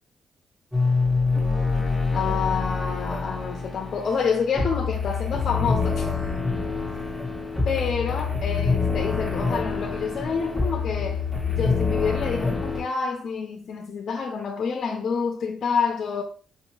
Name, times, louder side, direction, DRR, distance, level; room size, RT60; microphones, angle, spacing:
sound 1, 0.7-12.8, left 4 dB, ahead, 1.3 m, -26 dB
voice 1, 2.1-6.1 7.7-11.3 11.5-16.2, left 5 dB, 60° left, 0.5 m, -28 dB
4.6 x 2.7 x 2.9 m
cardioid pair, 95°, 0 cm